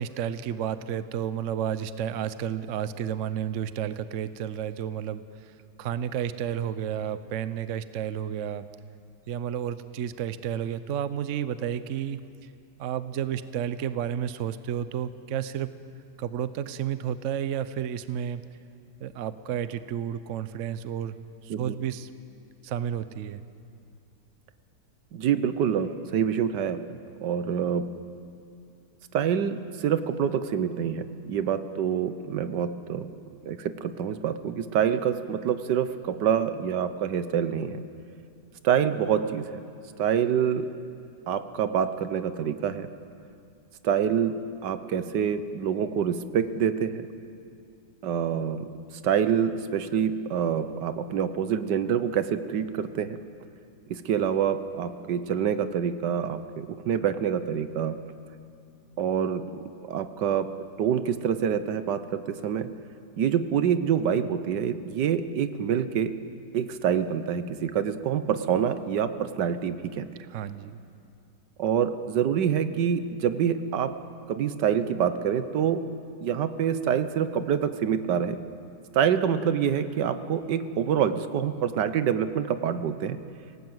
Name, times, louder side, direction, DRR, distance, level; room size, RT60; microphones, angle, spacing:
voice 1, 0.0-5.2 5.8-8.6 9.3-12.2 12.8-15.7 16.2-18.4 19.0-21.1 21.4-22.1 22.6-23.4 70.3-70.8, right 9 dB, 55° right, 13 dB, 0.9 m, -31 dB
voice 2, 25.1-26.8 27.2-27.8 29.1-33.1 33.4-37.8 38.6-39.6 40.0-40.7 41.3-42.9 43.8-44.3 44.6-47.0 48.0-48.7 49.0-53.2 53.9-57.9 59.0-59.4 59.9-60.5 60.8-62.7 63.2-66.1 66.5-70.3 71.6-73.9 74.3-75.8 76.2-78.4 78.9-83.2, right 8 dB, 80° right, 11 dB, 1.5 m, -26 dB
26.0 x 18.0 x 7.9 m, 2.5 s
omnidirectional pair, 1.9 m